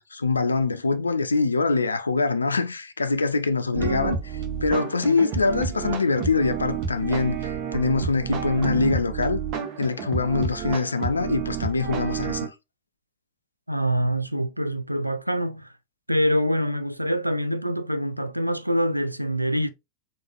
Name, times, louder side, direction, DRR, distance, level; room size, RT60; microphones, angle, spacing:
voice 1, 0.0-4.2 4.6-9.4 9.8-12.5, left 3 dB, 75° left, 0.4 m, -24 dB
sound 1, 3.7-12.5, right 7 dB, 40° right, 0.8 m, -30 dB
voice 2, 13.7-15.7 16.1-19.7, equal, 90° right, 0.3 m, -25 dB
3.9 x 2.2 x 2.9 m
figure-of-eight pair, 90°, 0 cm